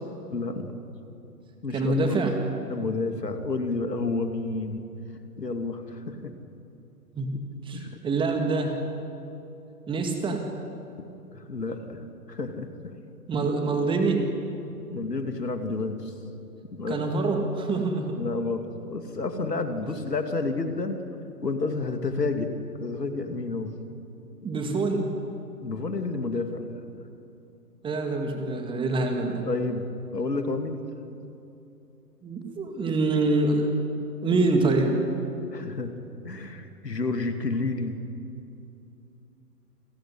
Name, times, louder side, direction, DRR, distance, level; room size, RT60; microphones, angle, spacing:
voice 1, 0.3-0.8 1.6-2.2 2.7-4.8 5.4-6.3 7.7-8.0 11.3-12.9 14.9-16.1 16.7-17.0 18.2-21.0 21.4-22.5 22.8-23.7 25.6-26.7 29.4-29.8 30.1-30.8 35.5-35.9 36.2-38.0, left 3 dB, 80° left, 6 dB, 2.7 m, -30 dB
voice 2, 1.7-2.3 7.2-7.4 7.7-8.8 9.9-10.5 13.3-14.3 16.9-18.1 24.4-25.2 27.8-29.4 32.2-33.7 34.2-35.0, right 3 dB, 10° right, 4 dB, 2.1 m, -25 dB
28.5 x 15.5 x 9.9 m, 2.8 s
figure-of-eight pair, 130°, 48 cm